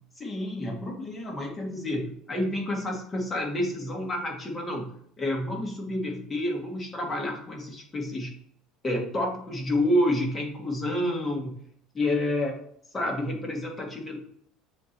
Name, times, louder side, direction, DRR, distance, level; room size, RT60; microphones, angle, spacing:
voice 1, 0.2-8.4 8.8-11.6 11.9-12.6 12.9-14.2, left 1 dB, 20° left, 0 dB, 1.9 m, -29 dB
7.0 x 3.0 x 4.7 m, 0.65 s
cardioid pair, 130°, 0 cm